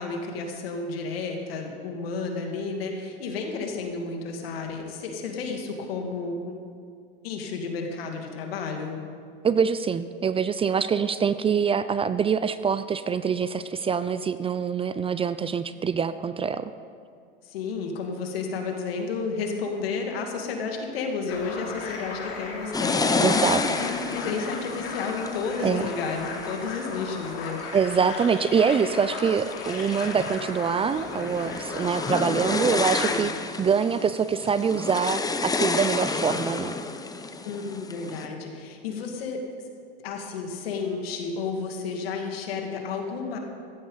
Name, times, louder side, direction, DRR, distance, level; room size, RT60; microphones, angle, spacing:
voice 1, 0.0-6.6 7.2-9.0 17.4-23.2 23.7-27.6 33.0-33.3 37.4-39.4 40.0-43.4, left 4 dB, 80° left, 3 dB, 2.4 m, -32 dB
voice 2, 9.4-16.7 23.2-23.6 25.6-25.8 27.7-36.7, right 6 dB, 20° right, 13 dB, 0.4 m, -25 dB
sound 1, 21.3-33.2, left 4 dB, 50° left, 3.2 m, -36 dB
sound 2, 22.7-27.5 28.1-28.6 29.0-38.3, left 3 dB, 10° left, 0.8 m, -30 dB
15.5 x 14.5 x 4.0 m, 2.3 s
hypercardioid pair, 100°, 30 cm